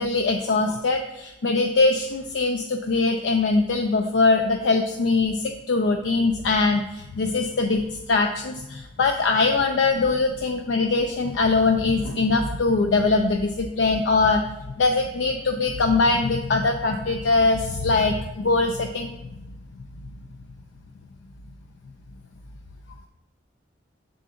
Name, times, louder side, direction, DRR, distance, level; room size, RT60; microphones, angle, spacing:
voice 1, 0.0-14.4 14.8-19.1, left 3 dB, 80° left, 5 dB, 0.4 m, -22 dB
6.7 x 3.8 x 3.7 m, 0.98 s
head